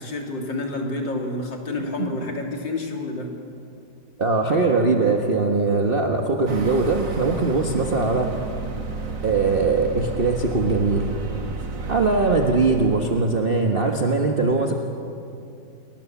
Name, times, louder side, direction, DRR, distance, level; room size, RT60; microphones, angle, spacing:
voice 1, 0.0-3.3, left 2 dB, 90° left, 1 dB, 3.7 m, -29 dB
voice 2, 4.2-8.5 9.2-11.1 11.9-14.7, right 3 dB, 35° right, 2 dB, 1.4 m, -21 dB
sound 1, 6.5-13.2, right 3 dB, 85° right, 2.6 m, -32 dB
29.0 x 21.0 x 7.2 m, 2.6 s
omnidirectional pair, 1.9 m